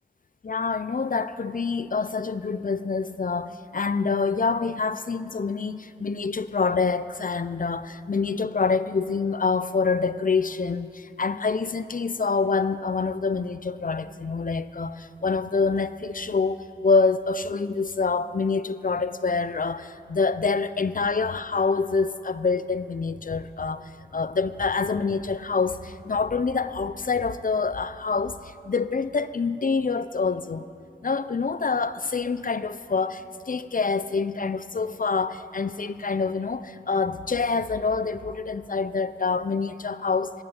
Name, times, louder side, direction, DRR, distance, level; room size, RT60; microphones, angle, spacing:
voice 1, 0.4-30.7 31.0-40.3, left 4 dB, 50° left, 14 dB, 0.5 m, -26 dB
15.0 x 6.7 x 8.8 m, 2.7 s
wide cardioid pair, 70°, 18 cm